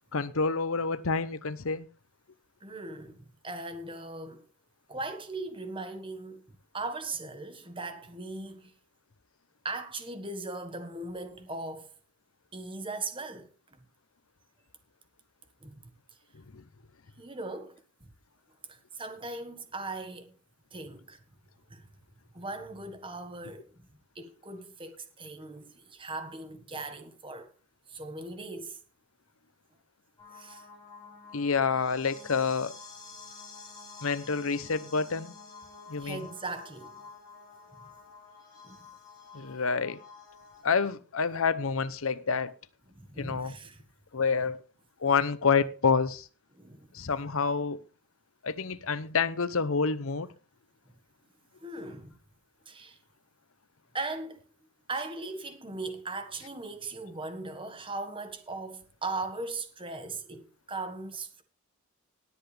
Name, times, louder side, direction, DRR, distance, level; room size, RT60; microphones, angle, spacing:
voice 1, 0.1-1.9 16.5-16.6 31.3-32.7 34.0-35.3 35.9-36.2 39.3-40.0 40.6-42.5 43.2-43.5 44.1-44.6 45.0-46.3 46.9-47.8 48.4-50.3, left 5 dB, 70° left, 0.8 m, -28 dB
voice 2, 2.6-4.4 4.9-6.4 6.7-8.7 9.6-11.9 12.5-13.8 15.6-15.9 17.2-18.1 18.7-20.3 20.7-21.2 21.7-21.9 22.3-23.9 24.1-27.5 27.9-28.8 30.3-30.7 36.0-36.9 37.8-37.9 38.6-38.9 42.9-43.8 46.5-47.1 51.6-52.2 52.6-53.0 53.9-54.4 54.9-61.4, right 3 dB, 25° right, 1.5 m, -39 dB
sound 1, 30.2-40.6, left 4 dB, 20° left, 6.3 m, -49 dB
18.5 x 8.1 x 3.4 m
head